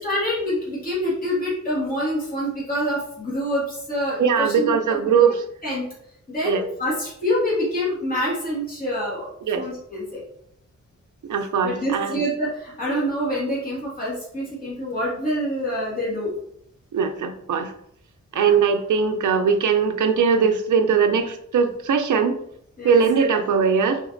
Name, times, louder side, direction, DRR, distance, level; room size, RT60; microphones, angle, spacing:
voice 1, 0.0-5.2 5.6-5.9 6.3-9.3 9.6-10.2 11.6-16.3 18.3-18.6 22.8-23.0, equal, 30° left, -7 dB, 1.9 m, -26 dB
voice 2, 4.2-5.3 6.4-6.6 9.5-9.6 11.3-12.2 16.9-17.7 18.3-22.4 22.8-24.0, right 6 dB, 75° right, 7 dB, 0.6 m, -20 dB
5.0 x 3.9 x 2.6 m, 0.71 s
wide cardioid pair, 175°, 31 cm